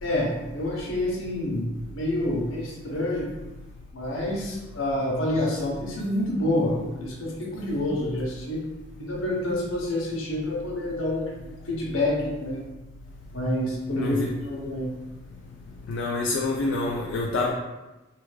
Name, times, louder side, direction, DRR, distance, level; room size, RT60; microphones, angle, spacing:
voice 1, 0.0-3.3 3.9-8.6 9.0-11.3 11.7-12.6 13.3-14.9, left 1 dB, 80° left, -2 dB, 0.8 m, -28 dB
voice 2, 14.0-14.3 15.9-17.5, left 2 dB, 65° left, -2 dB, 0.3 m, -27 dB
3.4 x 2.2 x 3.1 m, 1.1 s
head